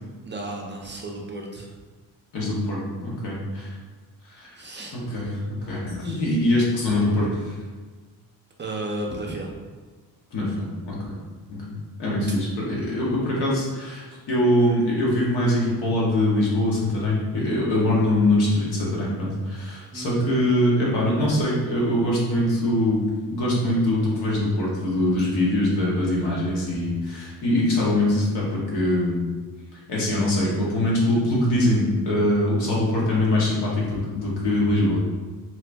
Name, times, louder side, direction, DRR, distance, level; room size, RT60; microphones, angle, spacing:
voice 1, 0.2-1.7 4.5-5.0 5.6-6.2 8.6-9.6 19.9-20.4, right 1 dB, 30° right, -1 dB, 0.4 m, -34 dB
voice 2, 2.3-3.7 4.2-4.5 4.9-7.6 10.3-11.1 11.5-23.0 23.3-29.2 29.9-35.0, left 1 dB, 80° left, -5 dB, 1.1 m, -23 dB
2.9 x 2.5 x 3.3 m, 1.4 s
cardioid pair, 100°, 40 cm